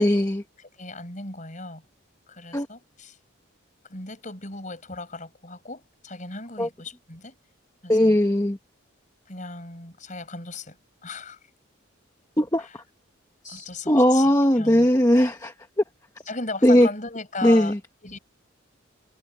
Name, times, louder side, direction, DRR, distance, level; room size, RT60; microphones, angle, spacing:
voice 1, 0.0-0.4 2.5-2.7 6.6-6.7 7.9-8.6 12.4-12.7 13.4-15.5 16.6-16.9 17.4-17.8, equal, 15° left, 1.1 m, -19 dB
voice 2, 0.6-1.8 2.3-3.2 3.9-7.3 7.8-8.2 9.3-10.8 11.0-11.4 12.6-12.8 13.5-14.9 16.3-17.7 18.0-18.2, left 3 dB, 35° left, 6.2 m, -37 dB
head